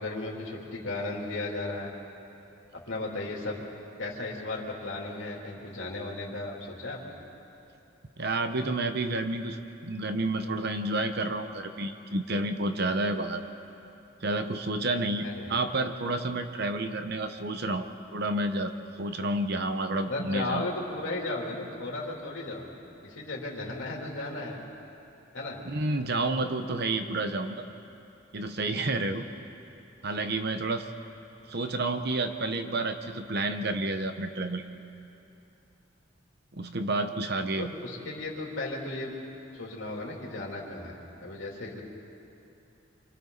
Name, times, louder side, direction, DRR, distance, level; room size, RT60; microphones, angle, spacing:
voice 1, 0.0-1.9 2.7-3.6 4.0-7.2 15.2-15.6 20.1-22.7 23.0-24.6 25.3-25.6 37.6-39.1 39.5-41.8, left 2 dB, 85° left, -3 dB, 3.3 m, -35 dB
voice 2, 8.2-13.4 14.2-20.6 25.6-27.6 28.3-29.2 30.0-30.9 31.5-34.7 36.5-37.7, right 2 dB, 55° right, 7 dB, 1.0 m, -30 dB
27.5 x 24.5 x 4.1 m, 2.9 s
head